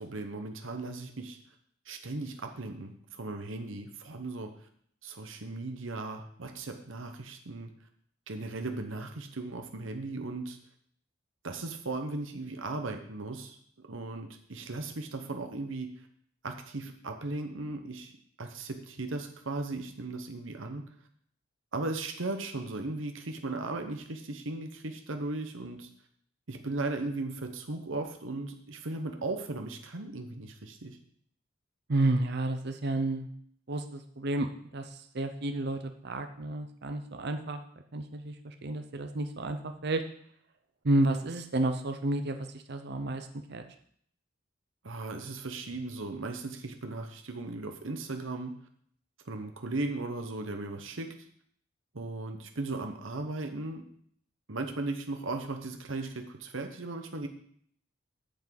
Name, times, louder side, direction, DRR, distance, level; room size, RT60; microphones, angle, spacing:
voice 1, 0.0-1.4 1.9-4.5 5.0-7.7 8.3-10.6 11.4-13.6 13.9-15.9 16.4-18.1 18.4-20.8 21.7-25.9 26.5-31.0 44.8-48.5 49.2-51.1 51.9-53.8 54.5-57.3, right 2 dB, 70° right, 5 dB, 1.1 m, -37 dB
voice 2, 31.9-33.3 33.7-34.9 35.1-37.6 37.9-40.0 40.8-43.6, right 2 dB, 55° right, 7 dB, 0.8 m, -31 dB
8.7 x 6.0 x 7.7 m, 0.63 s
head